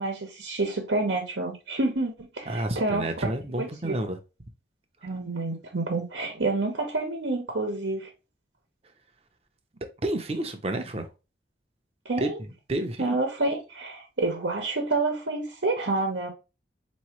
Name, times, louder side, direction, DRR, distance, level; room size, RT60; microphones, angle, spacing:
voice 1, 0.0-3.3 3.6-4.1 5.0-8.1 12.0-12.4 13.0-16.3, right 2 dB, 85° right, 1.0 m, -28 dB
voice 2, 2.5-4.2 10.0-11.1 12.2-12.3 12.7-13.2, right 1 dB, 35° right, 0.7 m, -30 dB
4.5 x 3.0 x 3.0 m
head